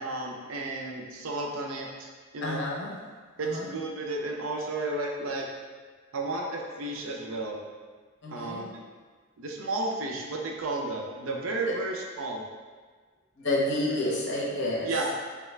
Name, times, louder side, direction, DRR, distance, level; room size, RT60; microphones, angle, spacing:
voice 1, 0.0-2.6 3.4-5.5 6.1-7.6 8.3-8.8 9.4-12.4 14.8-15.1, right 2 dB, 75° right, 0 dB, 0.5 m, -33 dB
voice 2, 2.4-2.9 3.4-3.7 8.2-8.7 13.4-14.9, left 1 dB, 60° left, -4 dB, 0.8 m, -29 dB
3.5 x 2.3 x 3.2 m, 1.5 s
head